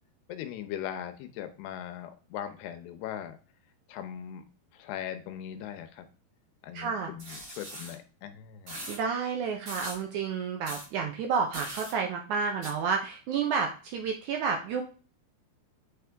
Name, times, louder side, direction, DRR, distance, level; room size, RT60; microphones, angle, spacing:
voice 1, 0.3-3.4 3.9-4.5 4.7-6.1 6.6-8.9, left 10 dB, 80° left, 9 dB, 2.8 m, -39 dB
voice 2, 6.7-7.1 8.9-14.8, right 5 dB, 85° right, 3 dB, 1.7 m, -30 dB
sound 1, 7.2-7.9 8.7-9.0 9.7-10.0 10.6-10.9 11.5-11.9 12.6-12.7, equal, 40° right, 5.3 m, -40 dB
8.3 x 4.8 x 3.5 m, 0.35 s
omnidirectional pair, 4.7 m